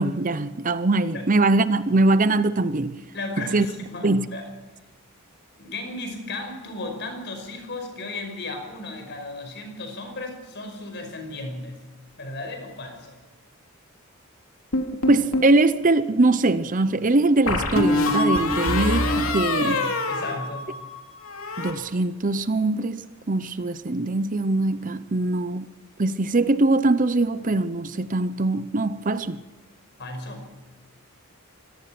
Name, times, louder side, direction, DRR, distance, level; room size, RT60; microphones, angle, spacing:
voice 1, 0.0-3.0 3.5-3.7 4.0-4.3 15.1-19.8 21.6-25.7 26.0-29.4, right 2 dB, 35° right, 0.7 m, -22 dB
voice 2, 3.1-4.5 5.6-11.8 12.2-13.1 19.6-20.8 25.1-25.2 30.0-30.6, left 2 dB, 50° left, 5.3 m, -35 dB
sound 1, 14.7-15.6 17.5-21.0 21.2-21.7, left 2 dB, 70° left, 3.1 m, -24 dB
24.5 x 18.0 x 6.0 m
head